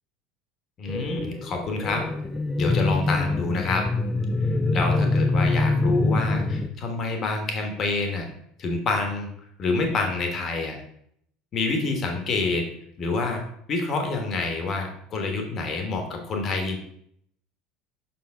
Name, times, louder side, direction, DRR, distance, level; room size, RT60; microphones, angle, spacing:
voice 1, 0.8-2.0 2.6-3.8 4.7-8.2 8.6-9.3 9.6-10.7 11.5-12.7 13.0-13.4 13.7-16.8, left 3 dB, 35° left, 3 dB, 1.4 m, -27 dB
sound 1, 0.9-6.7, left 2 dB, 15° left, 0.6 m, -24 dB
6.4 x 4.4 x 3.8 m, 0.68 s
figure-of-eight pair, 70°, 0 cm